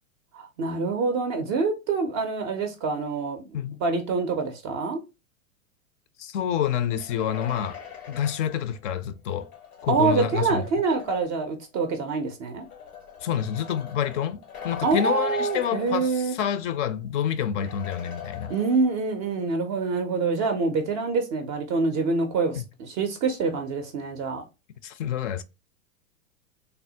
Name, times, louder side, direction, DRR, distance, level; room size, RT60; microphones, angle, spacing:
voice 1, 0.3-5.0 9.9-12.7 14.8-16.4 18.5-24.4, right 4 dB, 25° right, 0.3 m, -26 dB
voice 2, 6.2-7.8 8.1-9.5 9.8-10.6 13.2-14.4 14.6-18.5 22.6-22.7 24.8-25.4, left 9 dB, 55° left, 0.5 m, -28 dB
sound 1, 6.9-11.5 12.4-16.6 16.9-17.0 17.6-19.2, left 7 dB, 85° left, 0.9 m, -42 dB
3.3 x 2.0 x 2.6 m
hypercardioid pair, 100°, 43 cm